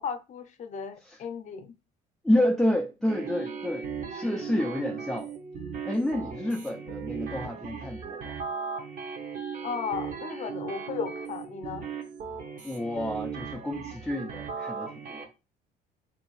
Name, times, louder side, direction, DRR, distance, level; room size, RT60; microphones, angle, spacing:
voice 1, 0.0-1.7 9.6-11.8, left 6 dB, 40° left, 0.6 m, -35 dB
voice 2, 2.2-5.3 5.9-8.4 12.6-15.3, left 1 dB, ahead, 0.3 m, -29 dB
sound 1, 3.1-15.2, right 6 dB, 50° right, 0.9 m, -37 dB
3.8 x 2.6 x 3.1 m
cardioid pair, 120°, 18 cm